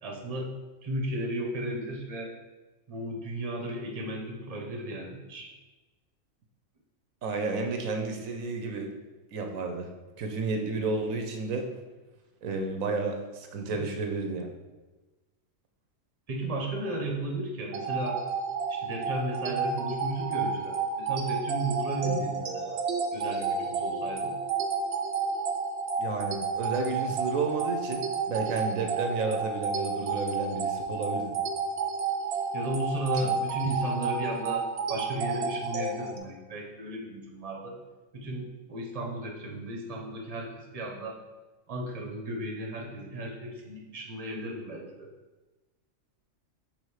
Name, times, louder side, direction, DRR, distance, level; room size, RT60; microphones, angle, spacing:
voice 1, 0.0-0.5 0.8-2.3 2.9-5.5 13.7-13.8 16.3-18.2 18.7-22.8 23.1-24.3 32.5-37.8 38.1-41.2 41.7-45.1, right 1 dB, 30° right, 1 dB, 0.9 m, -34 dB
voice 2, 7.2-8.9 9.3-9.9 10.2-11.7 12.4-14.5 26.0-31.4 33.1-33.3, right 3 dB, 85° right, 4 dB, 1.2 m, -31 dB
sound 1, 17.7-36.2, right 4 dB, 60° right, 0.8 m, -31 dB
5.5 x 3.6 x 4.7 m, 1.2 s
omnidirectional pair, 1.4 m